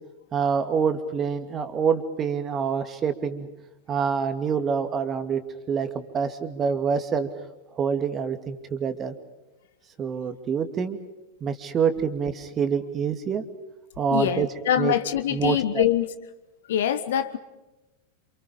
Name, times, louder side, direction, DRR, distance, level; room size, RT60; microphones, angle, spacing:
voice 1, 0.3-3.5 3.9-5.4 5.7-7.3 7.8-9.1 10.0-11.0 11.4-13.4 14.0-14.5 14.8-14.9 15.3-15.8, right 6 dB, 25° right, 9 dB, 2.4 m, -26 dB
voice 2, 14.1-16.1 16.7-17.4, left 10 dB, 60° left, 12 dB, 1.6 m, -24 dB
28.5 x 28.0 x 5.3 m, 1.0 s
figure-of-eight pair, 90°, 0 cm